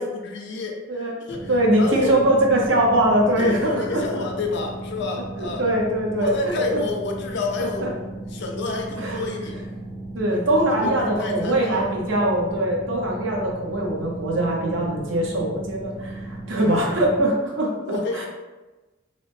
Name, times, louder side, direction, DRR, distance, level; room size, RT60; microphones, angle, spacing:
voice 1, 0.0-2.2 3.4-5.6 6.2-7.9 8.3-9.7 10.3-11.9 16.6-17.0 17.8-18.3, left 3 dB, 65° left, 1 dB, 0.5 m, -30 dB
sound 1, 1.3-17.3, right 2 dB, 10° left, 0.5 m, -36 dB
voice 2, 1.5-4.0 5.6-6.3 6.7-6.8 7.8-7.9 9.0-9.2 10.1-17.7 18.1-18.3, right 1 dB, 70° right, -1 dB, 0.6 m, -22 dB
2.7 x 2.0 x 3.2 m, 1.1 s
head